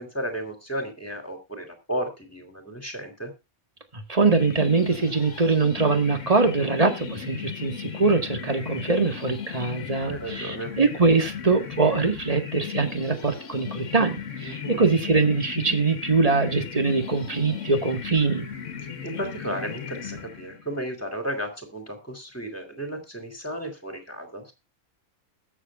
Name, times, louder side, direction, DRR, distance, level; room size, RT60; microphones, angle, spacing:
voice 1, 0.0-3.3 10.1-10.7 14.4-14.8 19.0-24.5, right 1 dB, 10° left, 6 dB, 3.6 m, -33 dB
voice 2, 3.9-18.5, right 4 dB, 25° right, 6 dB, 1.8 m, -23 dB
sound 1, 4.2-20.8, left 7 dB, 65° left, 1.7 m, -37 dB
21.0 x 7.5 x 2.5 m, 0.27 s
omnidirectional pair, 1.4 m